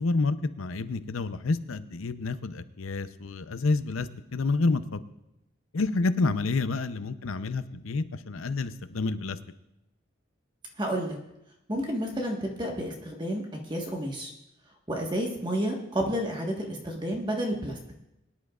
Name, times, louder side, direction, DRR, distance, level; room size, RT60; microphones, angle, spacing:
voice 1, 0.0-5.0 5.7-9.4, left 3 dB, 80° left, 12 dB, 0.7 m, -29 dB
voice 2, 10.8-11.2 11.7-14.3 14.9-17.8, equal, 20° right, 0 dB, 1.4 m, -30 dB
22.5 x 10.5 x 2.4 m, 0.87 s
head